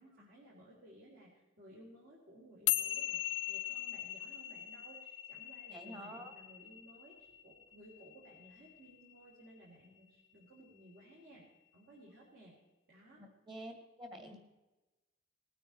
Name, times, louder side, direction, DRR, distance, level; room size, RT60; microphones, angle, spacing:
voice 1, 0.0-11.4 11.7-12.5 12.9-13.2 14.2-14.4, right 1 dB, 55° right, -6 dB, 3.7 m, -58 dB
sound 1, 2.7-9.2, left 14 dB, 60° left, 0.4 m, -39 dB
voice 2, 5.7-6.3 13.5-14.4, right 1 dB, 25° right, 4 dB, 2.2 m, -48 dB
19.5 x 9.1 x 4.3 m, 1.1 s
head